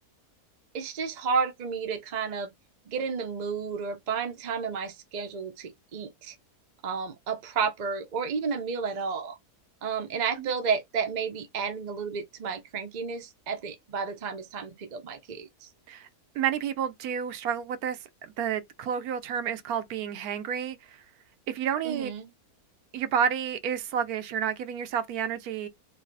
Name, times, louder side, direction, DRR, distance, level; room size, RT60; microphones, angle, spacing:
voice 1, 0.7-2.5 2.9-6.4 6.8-9.4 9.8-15.7 21.8-22.3, right 5 dB, 50° right, 0.5 m, -32 dB
voice 2, 16.3-21.0 21.5-22.1 22.9-25.7, right 8 dB, 75° right, 1.1 m, -30 dB
3.9 x 2.7 x 2.6 m
omnidirectional pair, 1.6 m